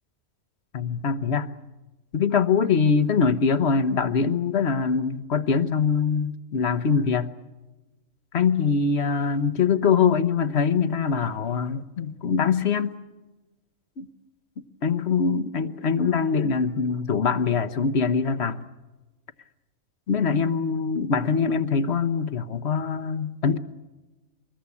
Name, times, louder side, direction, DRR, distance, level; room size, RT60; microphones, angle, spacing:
voice 1, 0.7-1.5 2.1-7.3 8.3-12.9 14.0-14.1 14.8-18.6 20.1-23.6, left 6 dB, 55° left, 10 dB, 1.2 m, -23 dB
25.0 x 21.0 x 8.4 m, 1.1 s
omnidirectional pair, 1.4 m